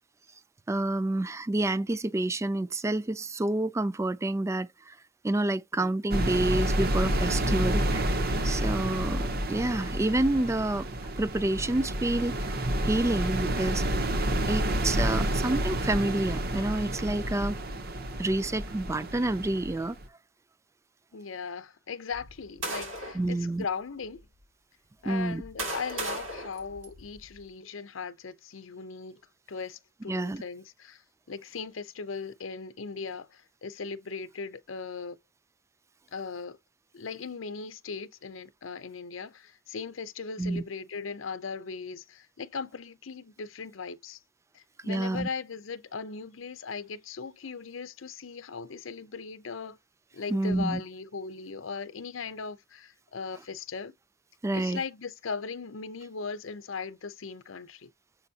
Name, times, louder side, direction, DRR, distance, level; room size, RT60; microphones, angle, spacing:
voice 1, 0.7-5.0 5.2-10.9 11.2-12.5 12.8-13.8 14.5-17.6 18.2-20.0 23.1-23.6 25.0-25.4 30.1-30.4 40.4-40.6 44.8-45.3 50.3-50.8 54.4-54.8, right 2 dB, 15° right, 0.3 m, -28 dB
sound 1, 6.1-20.1, right 1 dB, 50° right, 0.8 m, -29 dB
voice 2, 21.1-24.3 25.0-29.2 29.5-31.0 31.3-35.2 36.1-36.6 36.9-44.2 44.5-49.8 50.1-53.9 54.5-57.9, left 5 dB, 80° left, 0.7 m, -38 dB
sound 2, 22.1-23.3 24.0-24.2 25.1-27.4, right 1 dB, 80° right, 2.4 m, -37 dB
7.0 x 5.0 x 2.8 m
head